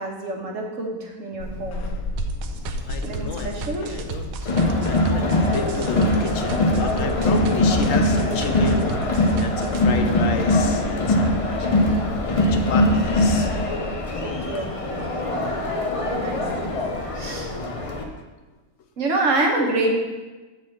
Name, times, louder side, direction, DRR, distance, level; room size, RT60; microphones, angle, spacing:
voice 1, 0.0-1.9 3.0-3.9 9.9-10.6 14.2-15.1 16.1-16.8 17.1-17.5 19.0-20.0, right 2 dB, 65° right, 0 dB, 1.4 m, -27 dB
Walk footsteps / Squeak, 1.4-14.1, left 2 dB, 85° left, 1.3 m, -35 dB
sound 1, 2.2-9.8, right 6 dB, 80° right, 1.0 m, -34 dB
voice 2, 2.8-9.0 9.4-11.5 12.0-13.5, left 5 dB, 70° left, 6 dB, 1.0 m, -31 dB
Crowd, 4.4-18.0, left 1 dB, 35° left, 0.5 m, -22 dB
6.5 x 4.0 x 6.4 m, 1.2 s
omnidirectional pair, 1.5 m